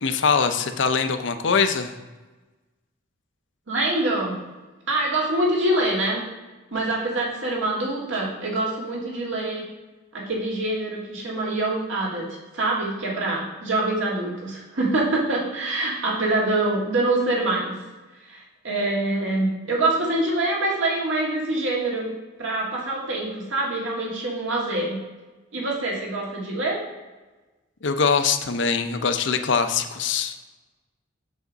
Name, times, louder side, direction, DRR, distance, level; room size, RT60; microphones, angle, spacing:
voice 1, 0.0-1.9 27.8-30.3, left 5 dB, 60° left, 7 dB, 0.6 m, -22 dB
voice 2, 3.7-4.4 4.9-6.2 6.7-9.6 10.1-17.8 18.3-22.1 22.4-25.0 25.5-26.8, right 2 dB, 65° right, -3 dB, 1.9 m, -25 dB
7.1 x 6.4 x 4.0 m, 1.2 s
head